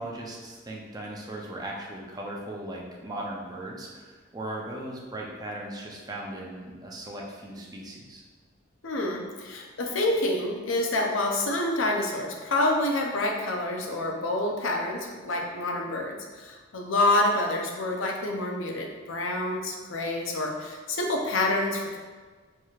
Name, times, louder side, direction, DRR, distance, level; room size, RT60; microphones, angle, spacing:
voice 1, 0.0-8.2, right 1 dB, 20° right, -2 dB, 0.5 m, -38 dB
voice 2, 8.8-22.0, left 2 dB, 75° left, 1 dB, 0.6 m, -27 dB
4.6 x 2.9 x 2.4 m, 1.4 s
head